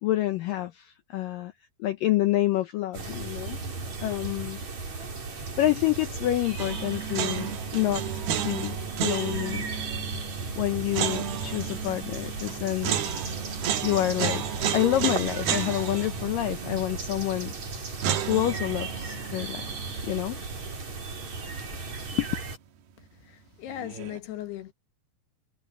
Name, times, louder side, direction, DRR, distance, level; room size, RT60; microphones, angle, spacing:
voice 1, 0.0-1.5 1.8-3.6 4.0-4.6 5.6-9.7 10.6-13.0 13.4-13.5 13.8-17.5 18.3-19.7 20.0-20.4 22.1-22.3, left 14 dB, 90° left, 1.9 m, -28 dB
sound 1, 2.9-22.6, right 3 dB, 40° right, 5.8 m, -36 dB
sound 2, 6.6-21.6 21.8-21.9 23.7-24.2, right 9 dB, 65° right, 3.3 m, -33 dB
voice 2, 23.0-24.7, left 12 dB, 70° left, 3.5 m, -38 dB
omnidirectional pair, 5.0 m